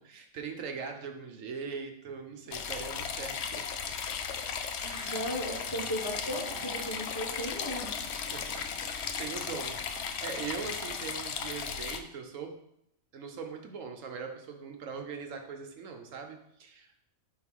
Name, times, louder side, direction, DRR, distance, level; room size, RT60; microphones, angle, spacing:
voice 1, 0.0-3.7 4.8-5.8 8.2-12.5 13.1-17.0, right 5 dB, 70° right, 4 dB, 1.1 m, -41 dB
sound 1, 2.5-12.0, left 6 dB, 65° left, 0.7 m, -36 dB
voice 2, 5.1-7.9, equal, 20° left, -3 dB, 0.6 m, -36 dB
sound 2, 6.0-11.2, right 7 dB, 90° right, 1.1 m, -52 dB
4.8 x 3.8 x 5.3 m, 0.76 s
omnidirectional pair, 1.4 m